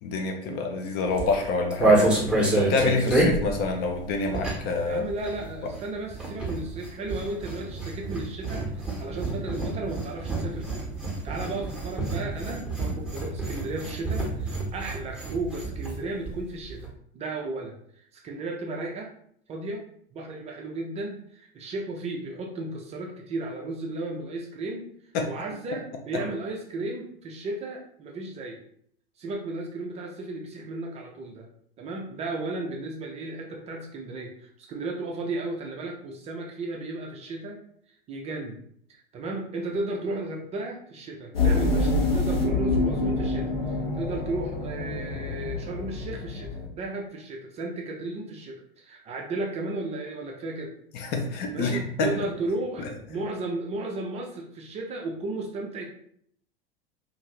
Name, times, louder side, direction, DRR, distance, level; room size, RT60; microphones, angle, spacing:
voice 1, 0.0-5.0 5.6-5.7 25.1-25.3 26.1-26.2 50.9-52.1, left 3 dB, 35° left, 3 dB, 0.5 m, -27 dB
sound 1, 1.1-4.8 5.1-16.0 16.3-16.4 16.6-16.9, right 2 dB, 5° right, 1.0 m, -27 dB
voice 2, 4.8-16.9 17.1-19.1 19.5-19.9 20.1-24.9 25.3-28.6 29.2-31.5 31.8-37.6 38.1-38.6 38.9-50.7 51.5-55.9, right 2 dB, 20° right, 0 dB, 0.5 m, -34 dB
sound 2, 41.3-46.7, left 2 dB, 75° left, 0.9 m, -26 dB
2.6 x 2.5 x 3.1 m, 0.65 s
figure-of-eight pair, 85°, 30 cm